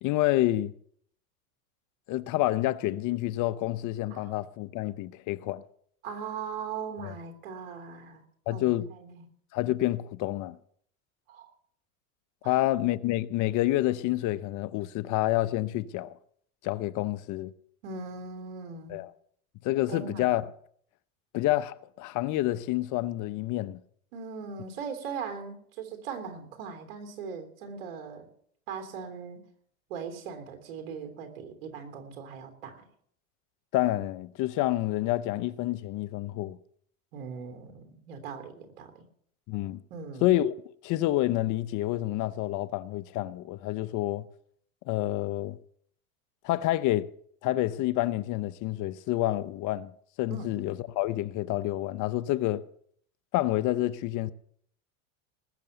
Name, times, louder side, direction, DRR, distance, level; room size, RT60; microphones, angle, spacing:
voice 1, 0.0-0.7 2.1-5.6 7.0-7.1 8.5-8.9 9.5-10.6 12.4-16.1 16.6-17.5 18.9-19.1 19.6-20.4 21.3-23.8 33.7-36.6 39.5-39.8 40.2-40.5 40.8-44.2 44.9-45.6 46.4-47.1 47.4-49.9 50.2-52.6 53.3-54.3, left 15 dB, 45° left, 0.8 m, -28 dB
voice 2, 6.0-8.2 8.5-9.2 11.3-11.5 12.4-12.6 17.8-19.0 19.9-20.3 24.1-28.3 28.7-29.4 29.9-32.8 37.1-39.0 39.9-40.3 50.3-50.6, right 5 dB, 75° right, 3.6 m, -39 dB
20.0 x 6.8 x 8.0 m
supercardioid pair, 115°, 41 cm